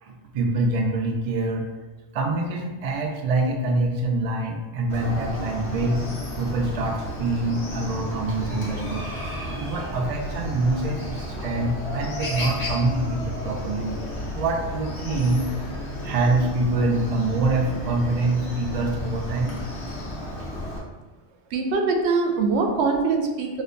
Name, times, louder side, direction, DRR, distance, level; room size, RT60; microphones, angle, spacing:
voice 1, 0.0-1.7 2.1-6.0 6.4-9.1 9.5-14.0 14.3-15.4 16.0-19.6, right 2 dB, 55° right, 1 dB, 0.4 m, -25 dB
Chicken rooster, 4.9-20.8, equal, 75° left, 1.2 m, -33 dB
voice 2, 21.5-23.6, right 4 dB, 80° right, 3 dB, 0.8 m, -23 dB
5.0 x 2.1 x 2.5 m, 1.2 s
omnidirectional pair, 1.1 m